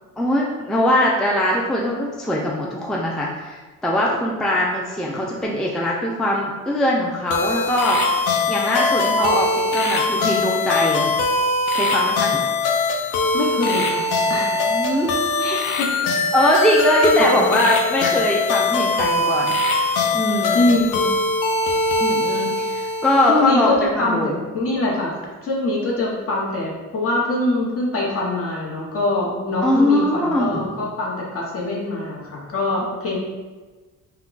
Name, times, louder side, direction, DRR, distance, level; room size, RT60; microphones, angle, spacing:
voice 1, 0.2-8.0 8.5-11.2 11.7-12.4 14.7-15.5 16.3-19.6 20.1-20.6 22.0-23.7 23.9-24.4 29.6-30.8, left 1 dB, ahead, -3 dB, 0.3 m, -21 dB
sound 1, 7.3-23.5, left 3 dB, 90° left, 0.5 m, -21 dB
voice 2, 13.3-14.0 14.3-14.6 15.4-15.9 17.2-17.4 20.5-21.1 23.3-25.2 25.4-33.2, left 2 dB, 50° left, -4 dB, 0.9 m, -23 dB
2.2 x 2.2 x 3.8 m, 1.3 s
cardioid pair, 90°, 30 cm